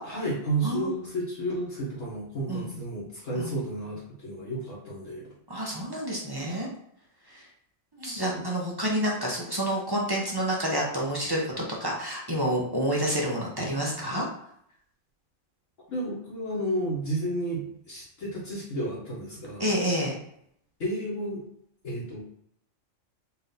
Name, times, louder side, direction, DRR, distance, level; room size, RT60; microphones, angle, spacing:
voice 1, 0.0-5.3 8.3-8.4 15.9-19.7 20.8-21.4 21.8-22.2, right 1 dB, 65° left, -8 dB, 1.7 m, -32 dB
voice 2, 5.5-6.7 7.3-7.4 7.9-14.2 19.6-20.2, equal, 20° right, -3 dB, 1.0 m, -28 dB
4.4 x 2.8 x 4.0 m, 0.71 s
omnidirectional pair, 1.4 m